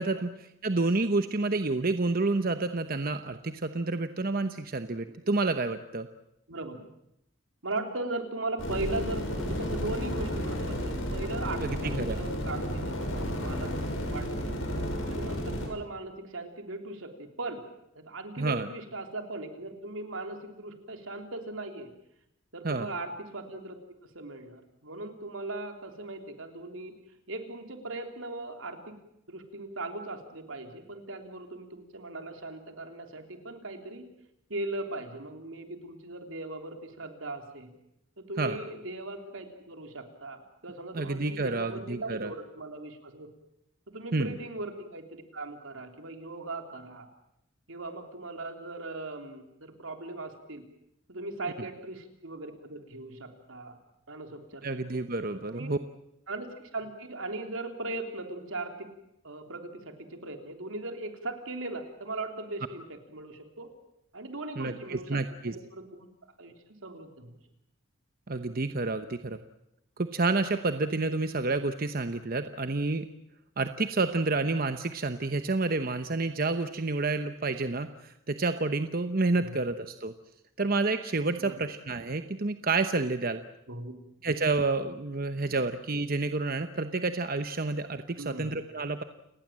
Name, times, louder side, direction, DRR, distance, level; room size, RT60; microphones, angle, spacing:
voice 1, 0.0-6.1 11.6-12.2 18.4-18.7 22.6-22.9 38.4-38.6 40.9-42.3 44.1-44.3 54.6-55.8 64.6-65.5 68.3-69.4 70.0-73.0 73.6-80.1 80.6-83.4 84.2-89.0, right 3 dB, 45° right, 9 dB, 1.0 m, -29 dB
voice 2, 6.5-6.9 7.6-14.6 15.1-17.6 18.0-21.9 22.5-23.8 24.0-26.9 27.3-29.0 29.3-34.1 34.5-37.7 38.2-43.3 43.9-47.1 47.7-50.7 51.1-53.8 54.1-55.0 55.5-55.7 56.3-58.9 59.2-63.7 64.1-66.1 66.4-67.4 79.3-79.5 81.4-81.6 83.7-84.0 85.5-85.6 88.2-88.5, right 2 dB, 80° right, 5 dB, 3.6 m, -39 dB
sound 1, 8.6-15.7, equal, 75° left, 6.7 m, -32 dB
29.5 x 19.0 x 7.6 m, 0.80 s
head